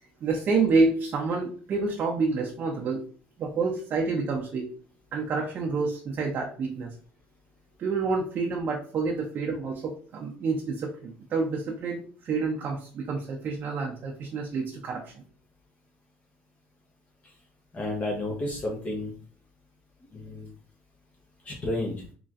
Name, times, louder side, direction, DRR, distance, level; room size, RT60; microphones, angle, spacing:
voice 1, 0.2-3.0 3.4-4.7 5.1-6.9 7.8-15.2, right 4 dB, 45° right, -1 dB, 0.7 m, -28 dB
voice 2, 17.7-19.1 20.1-20.5 21.4-22.0, left 1 dB, 30° left, -1 dB, 1.0 m, -31 dB
4.0 x 3.0 x 2.5 m, 0.43 s
cardioid pair, 105°, 5 cm